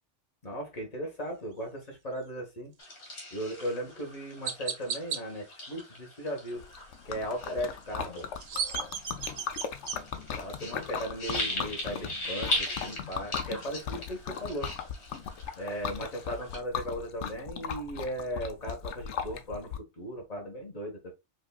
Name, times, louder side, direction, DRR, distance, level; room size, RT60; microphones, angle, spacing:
voice 1, 0.4-2.7 3.3-6.6 7.0-8.3 10.4-14.7 15.6-21.1, equal, 35° left, 1.3 m, -37 dB
sound 1, 2.8-16.6, left 1 dB, 70° left, 1.8 m, -39 dB
Chirp tweet, 3.5-3.7 4.4-5.2 8.2-10.0, right 7 dB, 75° right, 0.9 m, -34 dB
Liquid, 6.6-19.8, left 7 dB, 85° left, 0.9 m, -38 dB
5.1 x 2.6 x 2.3 m
omnidirectional pair, 1.2 m